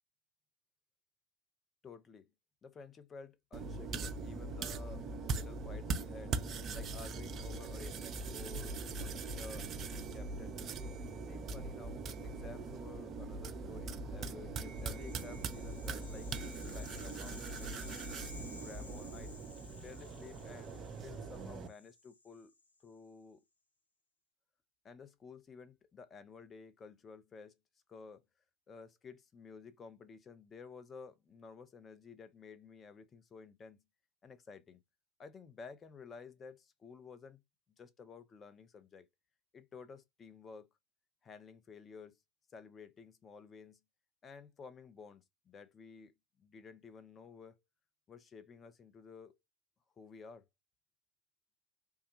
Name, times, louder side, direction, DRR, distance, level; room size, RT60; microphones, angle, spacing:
voice 1, 1.8-2.3 2.6-6.3 6.7-10.6 11.2-16.3 16.7-17.9 18.6-19.4 19.8-22.5 22.8-23.4 24.8-27.6 27.9-28.2 28.7-33.8 34.2-34.8 35.2-37.4 37.8-39.1 39.5-40.7 41.2-42.2 42.5-43.8 44.2-47.6 48.1-49.4 50.0-50.5, left 5 dB, 25° left, 0.5 m, -53 dB
sound 1, 3.5-21.7, right 3 dB, 30° right, 0.5 m, -41 dB
Rattle (instrument), 14.7-22.9, left 3 dB, 85° left, 0.7 m, -55 dB
3.4 x 2.1 x 2.9 m
figure-of-eight pair, 90°, 0 cm